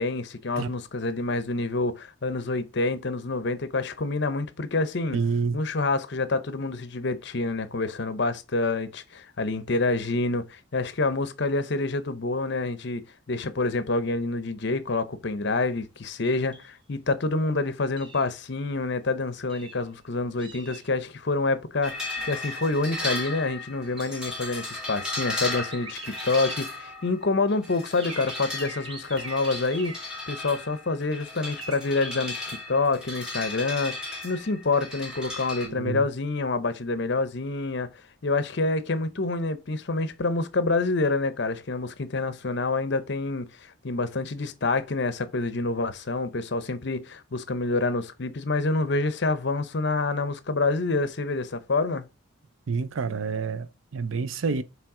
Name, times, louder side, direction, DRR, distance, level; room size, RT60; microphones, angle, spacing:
voice 1, 0.0-5.2 5.5-37.9 38.2-43.5 43.8-52.1, left 3 dB, 55° left, 0.8 m, -27 dB
voice 2, 5.1-5.6 35.6-36.1 52.7-54.6, right 5 dB, 75° right, 0.5 m, -28 dB
sound 1, 16.5-16.7 18.0-18.3 19.5-19.8 20.4-20.9 22.2-22.5 23.1-23.4 23.9-24.2 24.5-24.6 25.5-26.9 27.9-30.3 31.4-32.4, right 3 dB, 25° right, 0.9 m, -43 dB
sound 2, 21.8-35.7, left 2 dB, 5° right, 1.8 m, -35 dB
7.4 x 3.3 x 4.8 m
head